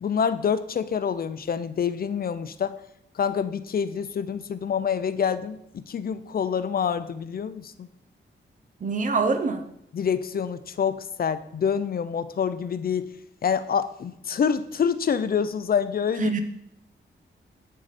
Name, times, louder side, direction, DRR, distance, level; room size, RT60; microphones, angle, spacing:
voice 1, 0.0-2.8 3.2-7.9 9.9-13.1 13.4-16.4, left 7 dB, 45° left, 12 dB, 0.5 m, -27 dB
voice 2, 8.8-9.6 16.2-16.4, right 4 dB, 40° right, 7 dB, 0.7 m, -24 dB
8.0 x 6.3 x 4.2 m, 0.77 s
wide cardioid pair, 155°, 21 cm